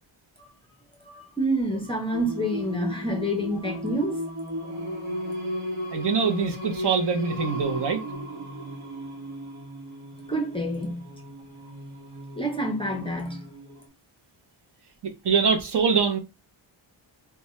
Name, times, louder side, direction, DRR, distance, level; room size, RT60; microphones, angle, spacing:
voice 1, 1.0-4.2 10.3-11.1 12.4-13.5, right 1 dB, 10° left, 0.5 m, -28 dB
Singing, 2.1-13.9, equal, 75° right, 1.0 m, -35 dB
voice 2, 5.9-8.0 15.0-16.2, right 6 dB, 55° right, 0.7 m, -24 dB
2.7 x 2.3 x 3.0 m
wide cardioid pair, 140°, 49 cm